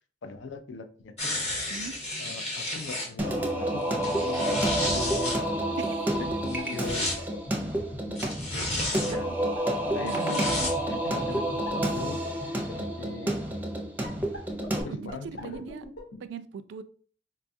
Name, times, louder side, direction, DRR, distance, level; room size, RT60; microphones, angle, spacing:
voice 1, 0.2-1.6 2.2-5.3 5.7-7.1 8.5-9.3 9.9-12.4 12.7-13.4 14.8-15.7, left 4 dB, 90° left, 0.4 m, -40 dB
sound 1, 1.2-3.1 3.9-5.4 6.5-7.2 8.2-9.2 10.1-10.7 11.3-11.4, left 1 dB, 35° left, 0.9 m, -32 dB
Singing, 3.2-14.8, right 1 dB, 10° right, 0.5 m, -29 dB
sound 2, 5.7-12.7 14.0-16.1, equal, 60° left, 0.9 m, -41 dB
voice 2, 5.8-6.2 10.0-10.4 14.9-15.2 15.4-15.8 16.3-16.8, right 5 dB, 75° right, 0.3 m, -39 dB
4.1 x 2.2 x 2.6 m
head